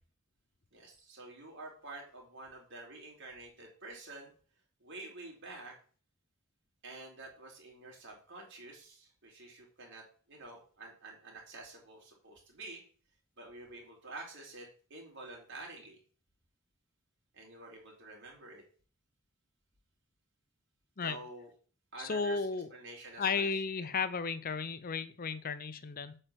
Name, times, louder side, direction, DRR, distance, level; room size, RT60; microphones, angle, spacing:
voice 1, 0.7-4.3 4.8-5.8 6.8-12.8 13.4-16.0 17.3-18.6 21.0-21.5 21.9-23.9 24.3-24.4, right 2 dB, 60° right, -1 dB, 4.1 m, -49 dB
voice 2, 22.0-22.7 23.2-26.2, left 5 dB, 40° left, 14 dB, 0.6 m, -34 dB
8.6 x 5.0 x 7.6 m, 0.42 s
head